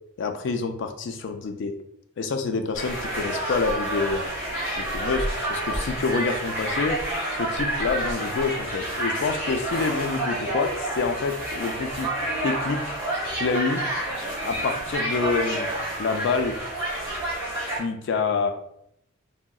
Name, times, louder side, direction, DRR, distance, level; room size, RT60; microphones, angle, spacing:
voice 1, 0.2-1.7 2.2-4.2 4.7-7.0 7.3-12.1 12.4-13.0 13.4-13.8 14.4-15.7 16.0-16.6 17.8-18.5, left 4 dB, 60° left, 6 dB, 0.3 m, -27 dB
sound 1, 2.7-17.8, right 1 dB, 10° right, 1.3 m, -29 dB
3.6 x 2.0 x 2.2 m, 0.73 s
head